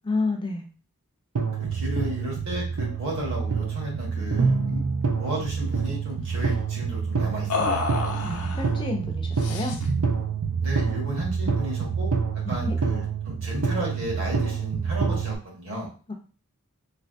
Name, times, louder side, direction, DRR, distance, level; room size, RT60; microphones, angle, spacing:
voice 1, 0.0-0.6 8.2-9.7 12.4-12.8 16.1-16.2, left 3 dB, 20° left, 2 dB, 0.4 m, -30 dB
sound 1, 1.4-15.4, right 5 dB, 85° right, 0.5 m, -27 dB
voice 2, 1.7-4.5 5.2-7.9 10.6-12.1 12.5-15.9, equal, 60° right, -3 dB, 1.6 m, -33 dB
sound 2, 4.2-4.4 4.6-4.8 5.2-5.9 7.5-8.7 9.4-10.0, left 4 dB, 90° left, 0.6 m, -30 dB
3.2 x 2.8 x 2.6 m, 0.36 s
head